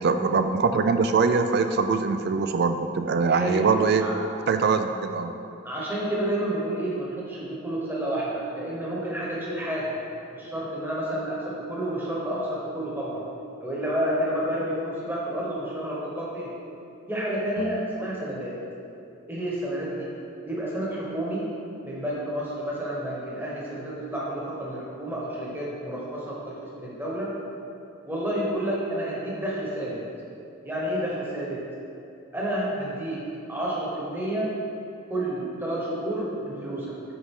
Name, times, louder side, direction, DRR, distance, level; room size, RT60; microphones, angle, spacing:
voice 1, 0.0-4.0 4.5-5.3, right 4 dB, 45° right, 8 dB, 0.3 m, -23 dB
voice 2, 3.3-3.7 4.0-4.2 5.6-10.0 10.4-13.3 13.6-16.6 17.1-18.5 19.3-20.1 20.5-21.5 21.8-27.4 28.0-30.1 30.6-31.6 32.3-34.7 35.1-37.0, right 1 dB, 10° right, -5 dB, 1.1 m, -30 dB
7.1 x 5.1 x 3.7 m, 2.7 s
head